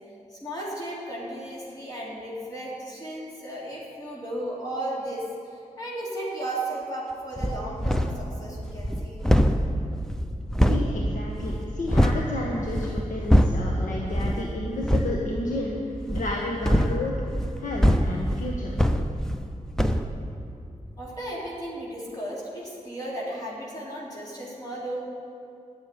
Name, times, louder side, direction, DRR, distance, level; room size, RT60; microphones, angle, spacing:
voice 1, 0.3-9.2 21.0-25.0, right 1 dB, 30° left, -6 dB, 3.4 m, -35 dB
sound 1, 7.4-8.3 8.6-12.3 12.7-13.7 14.1-14.5 14.8-15.2 16.0-19.5 19.8-20.1, equal, 5° left, 0.7 m, -23 dB
voice 2, 10.7-15.8 16.1-17.2 17.6-18.7, left 2 dB, 70° left, -2 dB, 1.5 m, -31 dB
11.5 x 8.1 x 9.9 m, 2.5 s
wide cardioid pair, 85°, 14 cm